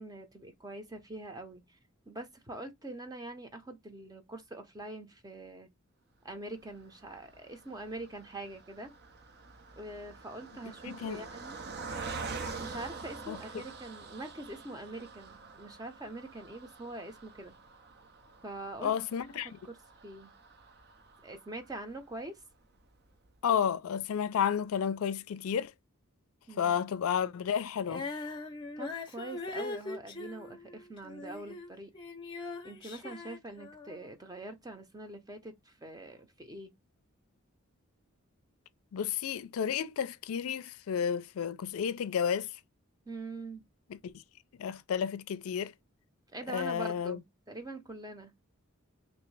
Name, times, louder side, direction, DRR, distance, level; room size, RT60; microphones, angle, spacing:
voice 1, 0.0-1.8 2.1-5.7 6.2-8.9 9.7-11.6 12.6-17.5 18.4-18.9 19.6-19.8 20.0-20.3 21.2-22.4 26.5-26.7 28.8-31.9 32.6-36.7 43.1-43.6 46.3-48.3, right 2 dB, 20° right, 0.7 m, -44 dB
Car passing by, 6.7-22.2 22.7-22.8 23.1-23.3, right 4 dB, 50° right, 0.6 m, -46 dB
voice 2, 10.9-11.2 13.3-13.4 18.8-19.5 23.4-25.7 26.6-28.1 38.9-42.5 44.0-44.1 44.6-45.7 46.5-47.2, left 8 dB, 80° left, 0.4 m, -31 dB
Female singing, 27.8-31.7 31.9-34.1, left 3 dB, 25° left, 0.7 m, -41 dB
3.1 x 2.7 x 3.2 m
head